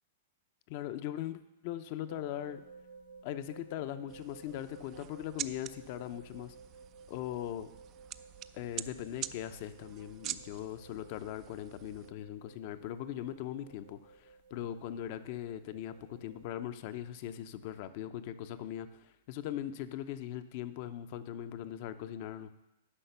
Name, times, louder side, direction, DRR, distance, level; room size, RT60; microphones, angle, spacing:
voice 1, 0.7-2.6 3.2-6.5 7.1-7.7 8.5-14.1 14.5-18.9 19.3-22.5, left 11 dB, 50° left, 11 dB, 0.7 m, -40 dB
sound 1, 2.1-16.4, right 4 dB, 55° right, 1.3 m, -56 dB
sound 2, 4.1-12.1, right 13 dB, 35° right, 0.4 m, -46 dB
10.0 x 5.8 x 6.8 m, 0.92 s
hypercardioid pair, 125°, 0 cm